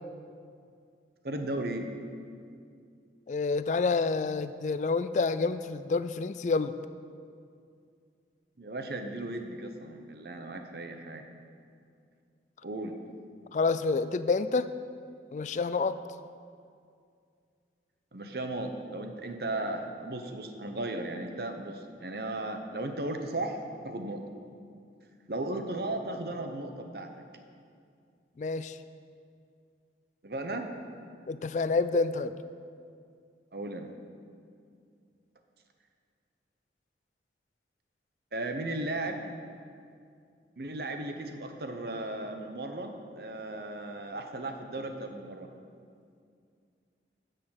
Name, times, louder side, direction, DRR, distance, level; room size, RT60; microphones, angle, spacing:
voice 1, 1.2-1.9 8.6-11.2 12.6-13.0 18.1-23.6 23.8-24.2 25.3-27.2 30.2-30.7 33.5-33.9 38.3-39.2 40.6-45.5, right 2 dB, 60° right, 5 dB, 0.9 m, -36 dB
voice 2, 3.3-6.7 13.5-14.7 15.3-16.0 28.4-28.8 31.3-32.3, left 4 dB, 40° left, 13 dB, 0.3 m, -28 dB
9.9 x 6.6 x 7.8 m, 2.3 s
head